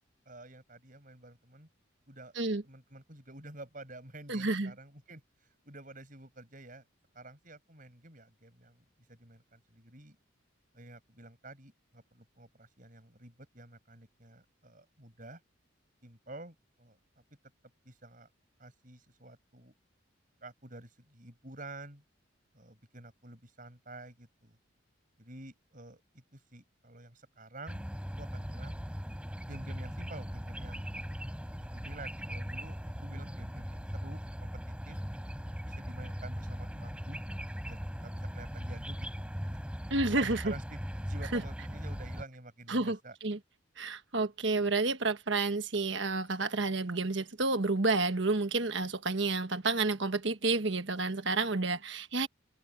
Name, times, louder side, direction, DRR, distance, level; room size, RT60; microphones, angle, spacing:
voice 1, 0.3-1.7 2.1-2.4 2.6-5.2 5.6-6.9 7.1-10.2 10.7-15.4 16.0-17.0 17.8-18.3 18.6-19.7 20.4-22.0 22.5-24.6 25.2-27.8 28.2-28.8 29.5-30.9 31.7-35.0 35.6-37.2 37.5-39.1 39.4-39.5 40.1-43.2, right 2 dB, 40° right, 7.2 m, -49 dB
voice 2, 4.3-4.7 39.9-40.5 41.3-41.4 42.7-43.4 43.8-52.3, right 3 dB, 65° right, 1.4 m, -30 dB
sound 1, 27.7-42.2, equal, 5° right, 5.6 m, -39 dB
head